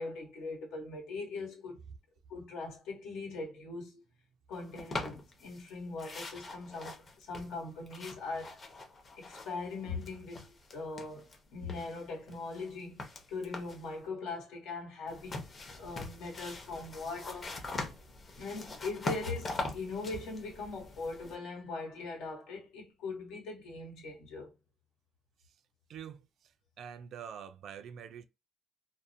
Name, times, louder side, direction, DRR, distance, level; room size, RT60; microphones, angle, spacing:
voice 1, 0.0-1.8 2.3-4.0 4.5-8.6 9.2-17.6 18.4-24.5, left 3 dB, 90° left, 1.1 m, -41 dB
sound 1, 4.8-5.7 6.0-9.7 10.0-11.4 11.7-13.9 15.1-21.4, left 3 dB, 35° left, 0.6 m, -42 dB
voice 2, 25.9-26.5 26.8-28.3, right 8 dB, 60° right, 0.3 m, -45 dB
2.5 x 2.0 x 2.6 m
cardioid pair, 120°, 0 cm